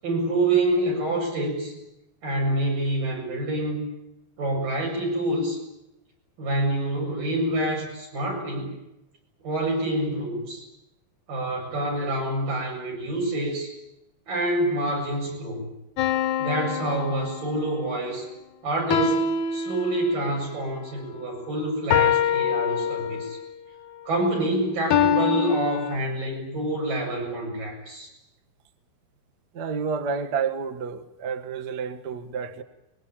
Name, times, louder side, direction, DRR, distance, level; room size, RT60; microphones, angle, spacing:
voice 1, 0.0-1.7 2.2-3.9 4.4-5.6 6.4-8.8 9.4-10.7 11.3-13.7 14.3-15.7 16.4-18.3 18.6-23.4 24.1-28.1, right 1 dB, 60° right, 9.2 m, -27 dB
sound 1, 16.0-17.8 18.9-20.4 21.9-23.4 24.9-26.0, left 7 dB, 65° left, 2.0 m, -24 dB
voice 2, 29.5-32.6, right 6 dB, 80° right, 0.9 m, -30 dB
24.0 x 22.5 x 9.0 m
omnidirectional pair, 4.4 m